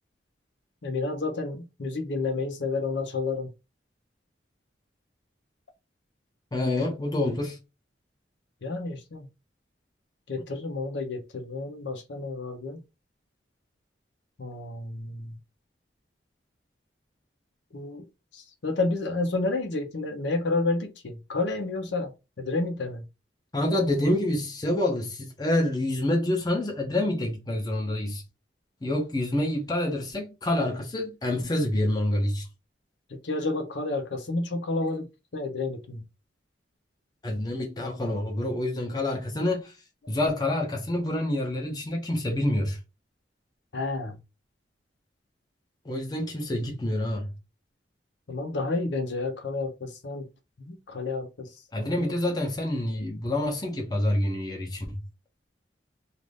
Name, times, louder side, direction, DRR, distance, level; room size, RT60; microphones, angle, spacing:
voice 1, 0.8-3.5 8.6-9.3 10.3-12.8 14.4-15.4 17.7-18.0 18.3-23.0 33.2-36.0 43.7-44.2 48.3-50.3 50.7-52.1, left 3 dB, 80° left, 0.7 m, -30 dB
voice 2, 6.5-7.6 23.5-28.2 28.8-32.5 37.2-39.7 40.1-42.8 45.8-47.3 51.7-55.0, left 1 dB, 20° left, 0.6 m, -27 dB
2.5 x 2.4 x 3.3 m
head